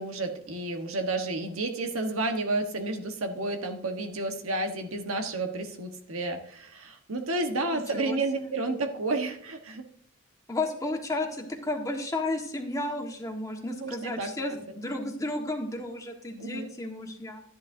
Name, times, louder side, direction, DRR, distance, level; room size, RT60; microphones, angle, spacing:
voice 1, 0.0-9.9 13.7-14.6 16.4-16.7, right 2 dB, 90° right, 5 dB, 1.3 m, -31 dB
voice 2, 7.7-8.5 10.5-17.4, left 2 dB, 15° left, 2 dB, 1.4 m, -33 dB
13.0 x 10.0 x 2.7 m, 0.67 s
head